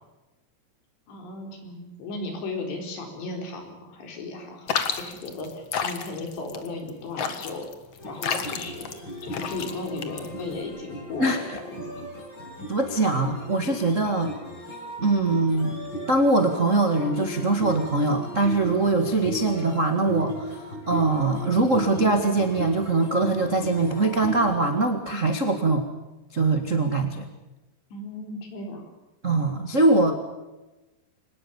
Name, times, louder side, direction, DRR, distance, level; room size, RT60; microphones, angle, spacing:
voice 1, 1.1-7.7 8.1-8.9 9.2-12.1 27.9-28.9, left 2 dB, 85° left, 3 dB, 6.5 m, -36 dB
sound 1, 4.7-10.6, left 6 dB, 50° left, 2.1 m, -31 dB
sound 2, 8.0-24.7, equal, 25° left, 7.3 m, -37 dB
voice 2, 11.2-11.6 12.7-14.3 15.0-15.7 16.1-25.9 26.3-27.3 29.2-30.1, right 2 dB, 45° right, 5 dB, 0.9 m, -22 dB
24.5 x 20.5 x 7.1 m, 1.1 s
omnidirectional pair, 4.8 m